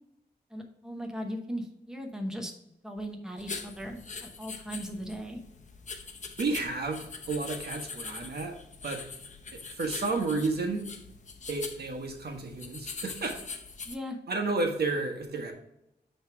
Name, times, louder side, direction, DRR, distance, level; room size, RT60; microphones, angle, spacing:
voice 1, 0.5-2.5 2.8-5.4 13.9-14.2, equal, 5° right, 3 dB, 0.9 m, -38 dB
sound 1, 3.4-14.0, left 4 dB, 45° left, 0.8 m, -43 dB
voice 2, 6.4-8.5 8.8-9.0 9.8-10.8 11.5-13.4 14.3-15.5, right 3 dB, 70° right, 2 dB, 1.3 m, -31 dB
9.3 x 3.4 x 4.6 m, 0.82 s
wide cardioid pair, 105°, 17 cm